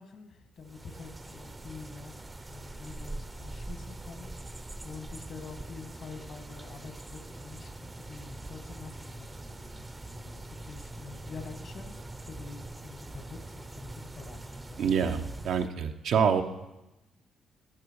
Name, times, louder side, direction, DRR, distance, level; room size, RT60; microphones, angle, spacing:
voice 1, 0.0-7.7 8.0-12.0 12.2-13.9 14.2-15.1, left 4 dB, 55° left, 5 dB, 2.0 m, -47 dB
sound 1, 0.6-15.7, right 2 dB, 15° right, 0.8 m, -43 dB
voice 2, 14.8-16.4, right 7 dB, 70° right, 6 dB, 0.9 m, -26 dB
12.5 x 11.5 x 4.8 m, 0.99 s
cardioid pair, 90°, 0 cm